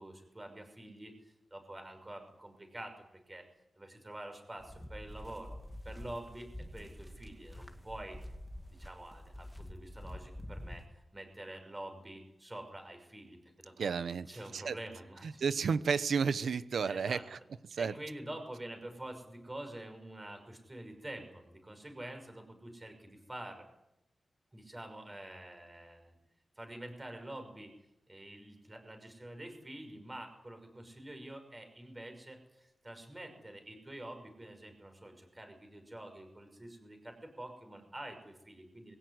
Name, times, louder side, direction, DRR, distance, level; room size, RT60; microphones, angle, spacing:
voice 1, 0.0-3.4 3.8-5.6 5.8-8.2 8.7-13.7 14.3-15.4 16.9-17.3 17.8-23.7 24.5-26.2 26.6-27.7 28.1-39.0, right 1 dB, 20° right, 6 dB, 5.9 m, -47 dB
sound 1, 4.6-10.9, left 1 dB, 5° left, 2.2 m, -47 dB
voice 2, 13.8-14.3 14.5-14.8 15.2-17.4 17.7-17.9, right 5 dB, 85° right, 13 dB, 1.1 m, -32 dB
22.0 x 17.0 x 9.8 m, 0.86 s
wide cardioid pair, 140°, 0 cm